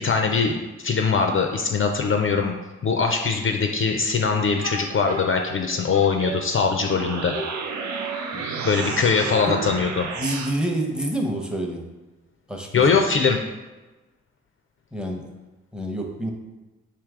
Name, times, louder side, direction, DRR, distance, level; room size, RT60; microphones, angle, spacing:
voice 1, 0.0-2.6 2.8-7.4 8.6-10.1 12.7-13.4, left 5 dB, 45° left, 3 dB, 0.4 m, -22 dB
sound 1, 4.6-7.0 7.3-10.2, right 1 dB, 55° right, 0.9 m, -36 dB
sound 2, 6.7-10.5, right 5 dB, 70° right, 0.5 m, -32 dB
voice 2, 10.2-11.9 12.5-13.0 14.9-15.3 15.7-16.3, right 1 dB, 5° right, 1 dB, 0.8 m, -28 dB
3.3 x 2.8 x 3.6 m, 1.1 s
supercardioid pair, 45°, 30 cm